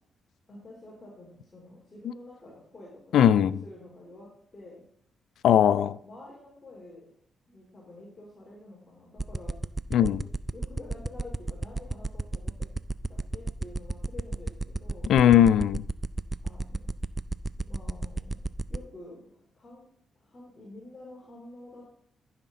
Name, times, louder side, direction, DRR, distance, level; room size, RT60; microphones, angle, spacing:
voice 1, 0.5-4.9 6.0-7.1 7.5-9.6 10.0-10.2 10.5-12.7 13.1-15.1 16.4-16.9 17.6-18.4 18.7-19.8 20.1-21.9, left 2 dB, 30° left, -5 dB, 3.3 m, -48 dB
voice 2, 3.1-3.6 5.4-6.0 9.9-10.2 15.1-15.8, left 10 dB, 80° left, 16 dB, 0.3 m, -19 dB
sound 1, 9.2-18.8, right 2 dB, 15° right, 0.4 m, -30 dB
14.0 x 5.9 x 3.8 m, 0.66 s
cardioid pair, 105°, 0 cm